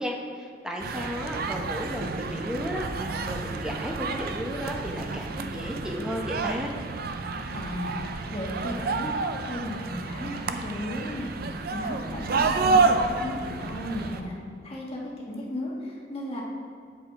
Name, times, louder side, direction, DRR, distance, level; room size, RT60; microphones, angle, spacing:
voice 1, 0.0-6.7, equal, 5° right, 0 dB, 0.9 m, -34 dB
sound 1, 0.8-14.2, right 4 dB, 60° right, 0.5 m, -29 dB
voice 2, 7.5-8.0 8.3-9.1 9.5-11.3 11.7-14.3 14.6-15.0 15.3-16.4, left 1 dB, 35° left, -3 dB, 1.5 m, -34 dB
7.8 x 7.2 x 4.6 m, 2.3 s
head